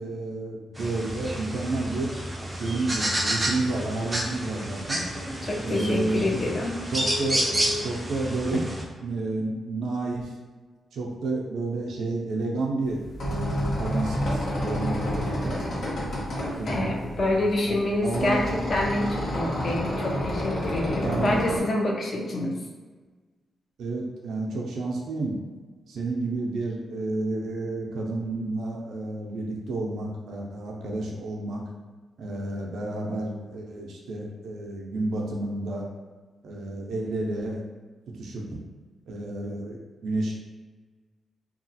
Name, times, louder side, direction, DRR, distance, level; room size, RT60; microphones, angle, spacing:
voice 1, 0.0-2.1 2.5-5.0 5.6-6.3 6.9-7.6 7.8-8.6 9.0-10.3 10.9-15.6 16.6-18.4 21.0-21.4 23.8-25.3 25.9-31.6 32.2-35.9 36.4-37.6 38.2-38.4 39.1-40.3, right 2 dB, 85° right, -1 dB, 0.5 m, -30 dB
sound 1, 0.8-8.8, right 1 dB, 15° right, 0.4 m, -30 dB
voice 2, 5.1-7.8 16.7-22.6, left 1 dB, 40° left, -1 dB, 0.5 m, -27 dB
sound 2, 12.9-21.6, equal, 80° left, 0.9 m, -29 dB
2.9 x 2.3 x 2.7 m, 1.4 s
cardioid pair, 115°, 0 cm